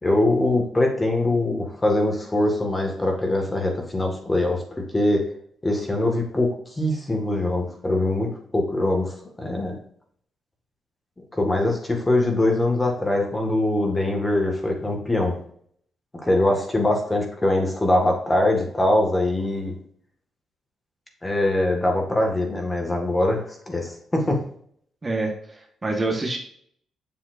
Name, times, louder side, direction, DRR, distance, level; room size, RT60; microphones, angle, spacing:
voice 1, 0.0-5.2 5.6-9.8 11.3-15.4 16.2-19.8 21.2-24.4, left 1 dB, 15° left, 1 dB, 1.9 m, -23 dB
voice 2, 25.0-26.4, right 2 dB, 20° right, 0 dB, 1.5 m, -27 dB
7.4 x 7.3 x 2.7 m, 0.63 s
cardioid pair, 120°, 0 cm